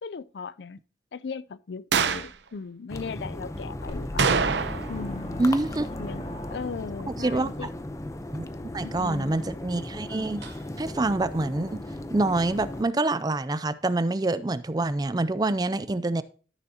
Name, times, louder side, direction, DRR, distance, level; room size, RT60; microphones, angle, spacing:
voice 1, 0.0-0.8 1.1-4.3 4.9-5.5 6.0-6.2 6.5-7.7 8.6-9.4, left 5 dB, 75° left, 0.4 m, -37 dB
sound 1, 1.9-2.4 4.2-5.0 5.3-5.4 10.4-10.5, right 5 dB, 85° right, 0.7 m, -25 dB
sound 2, 2.9-12.8, left 1 dB, 20° left, 0.6 m, -37 dB
sound 3, 3.9-7.1, left 1 dB, 35° left, 1.7 m, -38 dB
voice 2, 5.4-5.9 7.1-7.7 8.3-8.5 8.7-10.4 10.8-11.8 12.1-16.2, right 2 dB, 20° right, 0.4 m, -26 dB
13.0 x 6.9 x 2.8 m
head